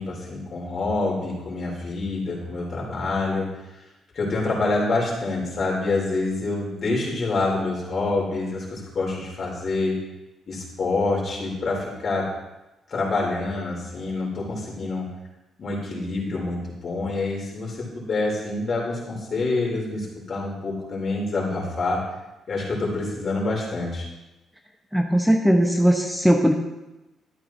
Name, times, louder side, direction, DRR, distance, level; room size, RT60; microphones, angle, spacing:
voice 1, 0.0-3.5 4.1-10.0 10.5-12.3 12.9-15.1 15.6-22.0 22.5-24.0, left 3 dB, 50° left, -3 dB, 4.1 m, -26 dB
voice 2, 24.9-26.5, equal, ahead, 3 dB, 0.8 m, -19 dB
12.5 x 9.0 x 3.1 m, 1.0 s
cardioid pair, 90°, 0 cm